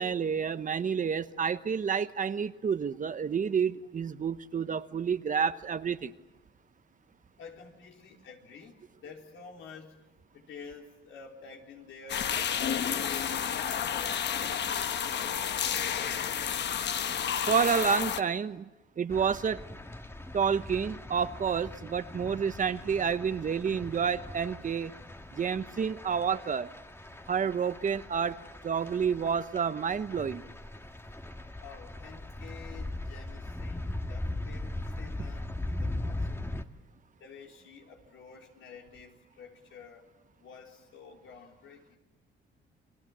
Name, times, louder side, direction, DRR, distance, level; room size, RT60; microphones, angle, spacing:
voice 1, 0.0-6.1 17.5-18.7 19.0-19.6 20.3-24.9 25.3-26.7 27.3-28.4 28.6-30.4, right 6 dB, 40° right, 12 dB, 1.0 m, -29 dB
voice 2, 7.4-10.1 10.3-16.3 31.6-36.6 37.2-40.1 40.4-42.0, left 5 dB, 80° left, 1 dB, 4.1 m, -50 dB
sound 1, 12.1-18.2, left 8 dB, 60° left, 1.2 m, -31 dB
sound 2, 19.1-36.6, left 1 dB, 10° left, 1.6 m, -40 dB
30.0 x 22.5 x 7.4 m, 1.1 s
cardioid pair, 90°, 20 cm